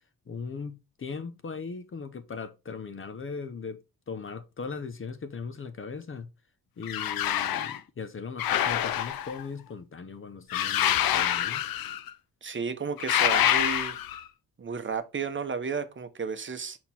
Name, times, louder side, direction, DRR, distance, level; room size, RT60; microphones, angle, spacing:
voice 1, 0.3-3.8 4.1-6.3 6.8-11.6, left 5 dB, 35° left, 0.8 m, -38 dB
sound 1, 6.8-7.8 8.4-9.4 10.5-12.1 13.0-14.2, left 11 dB, 75° left, 0.7 m, -26 dB
voice 2, 12.4-14.0 14.6-16.8, right 5 dB, 35° right, 0.9 m, -33 dB
5.8 x 4.3 x 4.3 m
cardioid pair, 95°, 35 cm